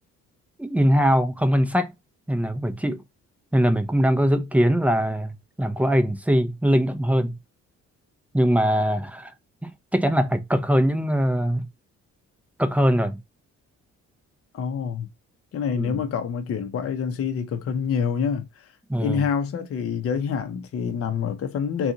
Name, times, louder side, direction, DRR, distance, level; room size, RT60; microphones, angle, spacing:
voice 1, 0.6-1.9 2.3-3.0 3.5-7.4 8.3-9.3 9.6-11.6 12.6-13.2 15.8-16.0 18.9-19.2, equal, 5° right, 0.5 m, -22 dB
voice 2, 14.5-15.1 15.5-18.7 19.0-21.9, left 6 dB, 50° left, 0.7 m, -27 dB
2.6 x 2.4 x 3.8 m
cardioid pair, 90°, 30 cm